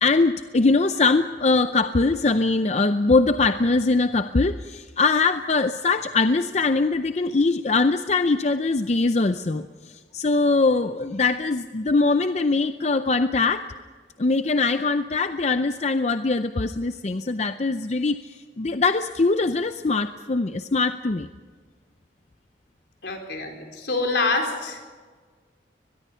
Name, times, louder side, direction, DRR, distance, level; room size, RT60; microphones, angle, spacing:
voice 1, 0.0-13.6 14.2-21.3, left 3 dB, 40° left, 9 dB, 0.6 m, -22 dB
voice 2, 23.0-24.8, left 3 dB, 70° left, 3 dB, 4.3 m, -26 dB
22.5 x 21.5 x 5.7 m, 1.5 s
head